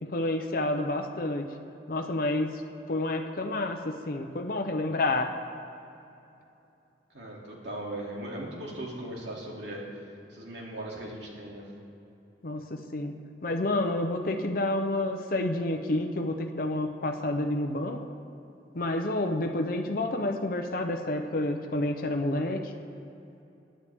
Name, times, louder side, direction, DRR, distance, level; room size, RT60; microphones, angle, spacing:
voice 1, 0.0-1.5 1.9-2.5 2.9-5.3 12.4-13.1 13.4-18.0 18.7-22.6, left 2 dB, 55° left, 4 dB, 0.8 m, -29 dB
voice 2, 7.1-9.8 10.3-11.7, right 1 dB, 85° right, -3 dB, 2.7 m, -38 dB
21.0 x 10.0 x 3.6 m, 2.8 s
head